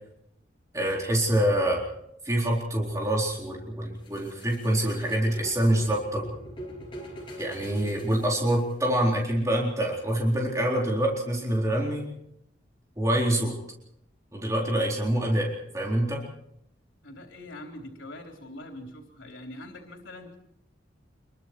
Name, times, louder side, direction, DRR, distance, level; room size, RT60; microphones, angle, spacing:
voice 1, 0.7-1.8 2.2-6.2 7.4-12.1 13.0-13.5 14.3-16.3, right 1 dB, 15° right, -2 dB, 4.1 m, -26 dB
sound 1, 4.0-9.0, equal, 30° left, 5.1 m, -43 dB
voice 2, 17.0-20.4, left 1 dB, 85° left, 3 dB, 3.7 m, -43 dB
26.5 x 22.5 x 4.7 m, 0.77 s
head